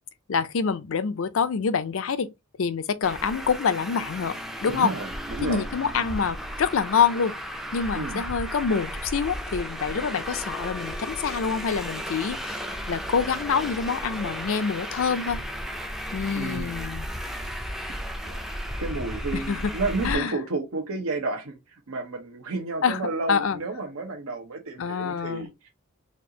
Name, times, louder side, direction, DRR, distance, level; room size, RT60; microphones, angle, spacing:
voice 1, 0.3-2.3 2.6-4.9 5.4-7.3 7.7-15.4 16.1-17.1 19.3-19.7 20.0-20.3 22.8-23.0 23.3-23.6 24.8-25.5, left 6 dB, 60° left, 0.4 m, -26 dB
Traffic noise roadway noise, 3.0-20.1, equal, ahead, 0.4 m, -34 dB
voice 2, 4.7-5.6 7.9-8.2 16.3-16.7 18.2-18.4 18.8-21.6 21.9-25.7, right 3 dB, 70° right, 0.8 m, -31 dB
4.3 x 2.4 x 2.7 m
head